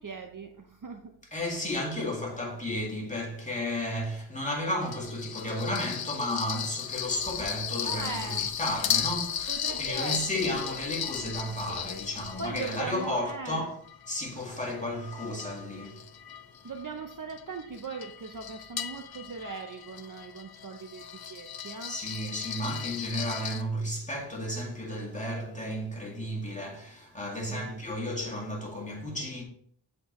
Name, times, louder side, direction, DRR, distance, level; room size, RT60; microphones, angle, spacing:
voice 1, 0.0-1.2 7.8-8.5 9.5-10.6 11.4-11.5 12.4-13.6 16.6-21.9 27.4-27.8, right 4 dB, 40° right, 0.6 m, -39 dB
voice 2, 1.3-13.8 14.1-16.1 21.9-29.4, left 1 dB, 15° left, 2.1 m, -33 dB
sound 1, 4.8-13.3 13.9-23.6, left 8 dB, 50° left, 0.5 m, -36 dB
Tick-tock, 7.0-12.5, left 1 dB, 35° left, 1.7 m, -49 dB
7.6 x 4.3 x 3.0 m
wide cardioid pair, 65°, 48 cm